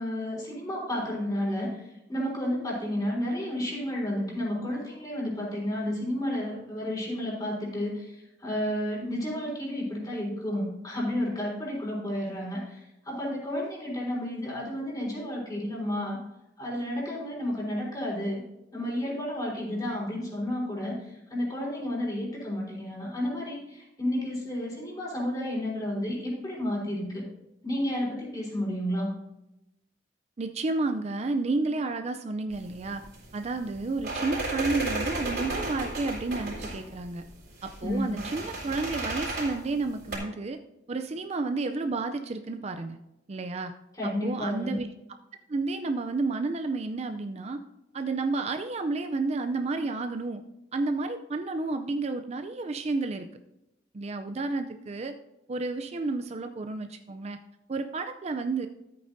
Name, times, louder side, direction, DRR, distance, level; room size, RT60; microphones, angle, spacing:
voice 1, 0.0-16.2 16.6-18.4 18.7-27.3 27.6-29.1 37.8-38.2 43.9-44.8, left 1 dB, 20° left, -4 dB, 3.9 m, -31 dB
voice 2, 30.4-33.0 33.3-37.2 37.6-40.6 40.9-43.0 43.3-43.7 44.0-44.9 45.5-47.6 47.9-50.4 50.7-53.3 53.9-55.1 55.5-57.4 57.7-58.7, right 3 dB, 35° right, 8 dB, 0.4 m, -31 dB
sound 1, 32.5-40.2, right 2 dB, 65° right, 4.1 m, -35 dB
13.5 x 8.6 x 2.6 m, 0.92 s
head